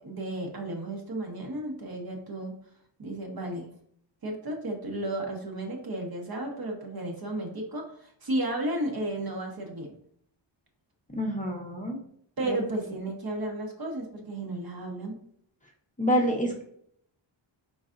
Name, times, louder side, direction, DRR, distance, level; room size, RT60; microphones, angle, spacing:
voice 1, 0.0-2.5 3.0-3.7 4.2-9.9 12.4-15.2, right 1 dB, 50° right, 1 dB, 1.0 m, -33 dB
voice 2, 11.2-12.0 12.5-12.6 16.0-16.6, equal, 15° left, 0 dB, 0.6 m, -27 dB
4.7 x 3.9 x 2.5 m, 0.66 s
wide cardioid pair, 145°, 47 cm